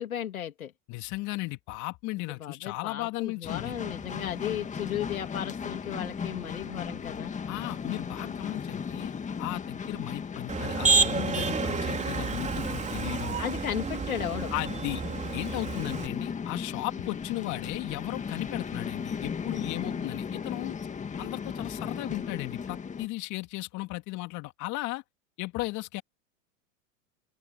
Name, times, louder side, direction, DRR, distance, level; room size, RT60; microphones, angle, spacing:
voice 1, 0.0-0.7 2.3-7.3 13.4-14.5 19.8-20.1, left 10 dB, 90° left, 3.1 m, -35 dB
voice 2, 0.9-3.8 7.5-9.1 9.4-13.4 14.5-15.0 15.3-20.7 21.2-25.0 25.4-26.0, left 21 dB, 45° left, 2.4 m, -35 dB
sound 1, 3.4-23.1, left 6 dB, 15° left, 1.8 m, -37 dB
Motor vehicle (road), 10.5-16.1, right 5 dB, 15° right, 3.6 m, -29 dB
open air
hypercardioid pair, 110°, 41 cm